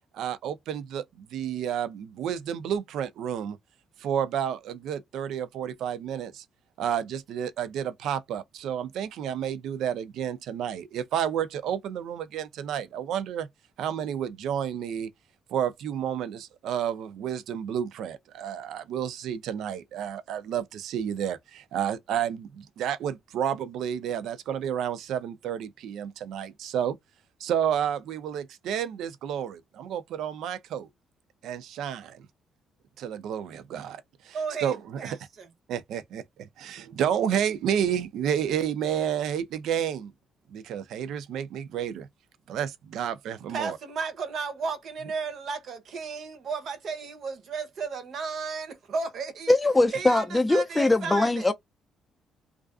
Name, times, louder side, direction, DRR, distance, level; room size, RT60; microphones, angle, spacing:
voice 1, 0.1-3.6 4.0-6.4 6.8-13.5 13.8-15.1 15.5-27.0 27.4-30.9 31.4-32.3 33.0-35.2 35.7-40.1 40.5-42.1 42.5-43.8, right 9 dB, 80° right, 0.4 m, -31 dB
voice 2, 34.3-35.5 43.5-49.5 49.9-51.5, right 5 dB, 65° right, 0.7 m, -34 dB
voice 3, 49.5-51.5, left 2 dB, 15° left, 0.3 m, -21 dB
2.4 x 2.2 x 2.3 m
cardioid pair, 90°, 0 cm